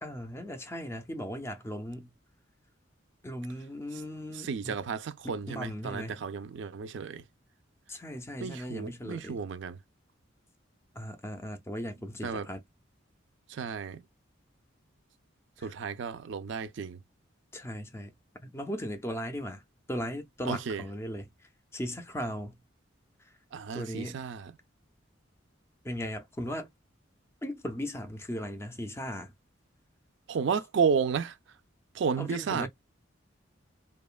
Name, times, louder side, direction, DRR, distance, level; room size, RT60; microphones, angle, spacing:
voice 1, 0.0-2.1 3.2-4.8 5.2-6.3 7.9-9.4 10.9-12.6 15.6-15.8 17.5-18.2 18.4-19.6 19.9-21.3 21.7-22.6 23.7-24.3 25.8-26.7 27.4-29.3 32.2-32.7, equal, 15° left, 0.4 m, -37 dB
voice 2, 4.3-7.2 8.4-9.8 12.2-12.5 13.5-14.0 15.6-17.0 20.4-20.8 23.5-24.5 30.3-31.4 31.9-32.7, right 6 dB, 65° right, 0.4 m, -32 dB
2.8 x 2.2 x 2.3 m
head